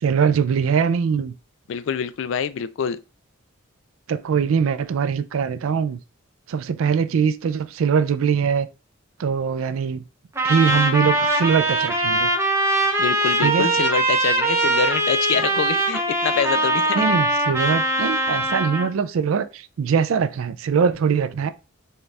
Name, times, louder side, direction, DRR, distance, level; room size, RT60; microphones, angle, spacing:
voice 1, 0.0-1.3 4.1-6.0 6.5-8.7 9.2-10.0 10.4-12.3 13.4-13.7 16.9-21.5, right 6 dB, 75° right, 0.3 m, -22 dB
voice 2, 1.7-3.0 13.0-17.0, left 6 dB, 65° left, 0.3 m, -25 dB
Trumpet, 10.4-18.9, right 1 dB, 10° right, 0.5 m, -21 dB
4.3 x 2.4 x 3.2 m
head